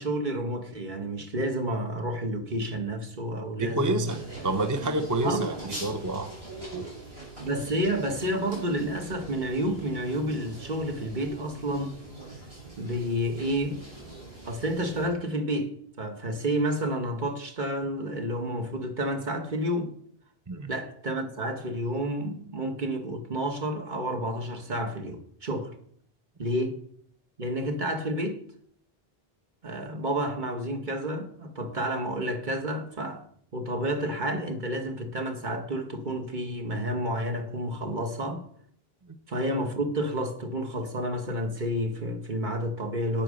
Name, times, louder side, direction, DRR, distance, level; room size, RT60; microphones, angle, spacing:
voice 1, 0.0-4.2 5.2-5.5 7.4-12.0 12.8-13.8 14.4-19.9 20.7-25.7 26.4-26.8 27.4-28.4 29.6-33.2 33.5-38.4 39.3-43.2, right 1 dB, 50° right, 1.6 m, -30 dB
voice 2, 3.6-4.2 4.4-5.5 5.8-6.3 6.7-6.9 20.5-20.7, right 2 dB, 20° right, 0.7 m, -28 dB
sound 1, 4.1-15.1, right 2 dB, 85° right, 6.9 m, -41 dB
9.1 x 9.0 x 6.4 m
omnidirectional pair, 1.0 m